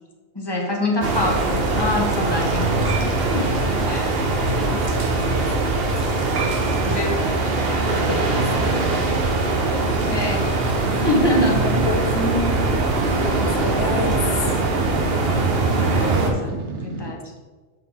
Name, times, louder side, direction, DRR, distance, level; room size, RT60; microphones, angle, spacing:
voice 1, 0.3-3.6 3.9-4.2 6.8-7.9 10.0-10.5 11.0-11.7 15.7-16.5 16.8-17.3, left 1 dB, 20° left, 1 dB, 1.1 m, -25 dB
sound 1, 1.0-16.3, right 2 dB, 60° right, 1.1 m, -21 dB
voice 2, 3.2-3.9 4.4-5.9 7.6-8.9 9.6-10.2 10.9-11.1 11.4-12.7 13.2-14.6 16.0-16.9, left 3 dB, 60° left, 5 dB, 1.1 m, -31 dB
sound 2, 10.8-17.1, right 4 dB, 75° right, 1.2 m, -33 dB
6.8 x 6.7 x 3.5 m, 1.3 s
omnidirectional pair, 1.2 m